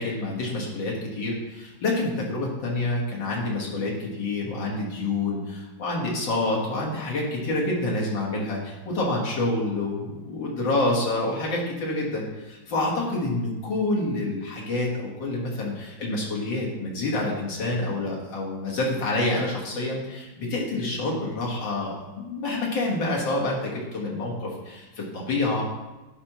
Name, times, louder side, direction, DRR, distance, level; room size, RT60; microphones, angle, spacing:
voice 1, 0.0-25.6, left 2 dB, 70° left, -4 dB, 2.3 m, -27 dB
10.5 x 5.1 x 3.0 m, 1.1 s
omnidirectional pair, 2.2 m